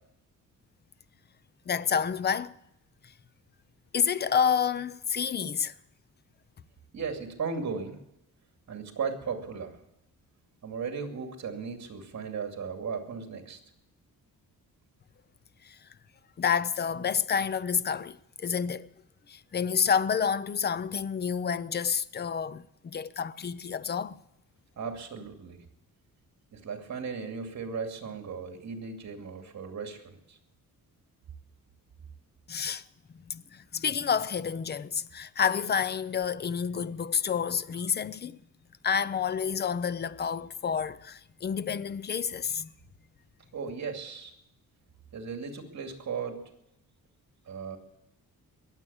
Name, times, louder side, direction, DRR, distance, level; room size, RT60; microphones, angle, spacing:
voice 1, 1.7-2.5 3.9-5.7 15.6-15.8 16.4-18.9 19.3-24.2 32.5-32.8 33.1-38.4 38.8-42.7, left 7 dB, 30° left, 0.5 m, -29 dB
voice 2, 6.9-8.0 8.7-9.8 10.6-13.6 24.8-25.6 26.5-30.4 43.5-44.3 45.1-46.5 47.5-47.8, right 5 dB, 50° right, 2.6 m, -36 dB
21.5 x 8.3 x 7.1 m
wide cardioid pair, 145°, 35 cm